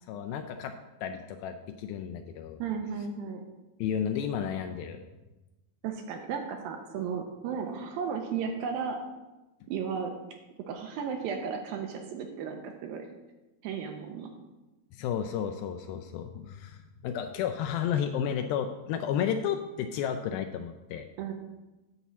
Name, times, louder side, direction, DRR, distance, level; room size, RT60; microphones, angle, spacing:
voice 1, 0.1-0.8 1.0-2.6 3.8-5.0 14.9-21.1, left 8 dB, 85° left, 5 dB, 2.1 m, -32 dB
voice 2, 2.6-3.4 5.8-9.0 9.7-10.1 10.7-13.1 13.6-14.3 21.2-21.3, right 6 dB, 80° right, 4 dB, 2.2 m, -34 dB
9.5 x 4.2 x 7.1 m, 1.1 s
omnidirectional pair, 4.6 m